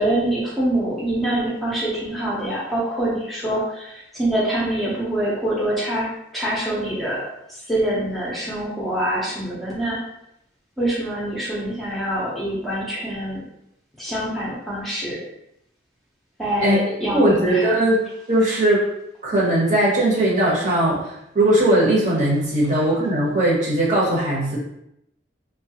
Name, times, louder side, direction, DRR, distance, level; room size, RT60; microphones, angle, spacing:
voice 1, 0.0-6.1 6.3-7.2 7.7-10.0 10.8-13.4 14.0-15.2 16.4-17.7 18.5-18.6, right 1 dB, ahead, -8 dB, 0.6 m, -25 dB
voice 2, 17.1-18.0 18.3-18.8 19.2-24.6, right 1 dB, 40° right, -5 dB, 1.0 m, -19 dB
3.1 x 2.2 x 2.8 m, 0.81 s
head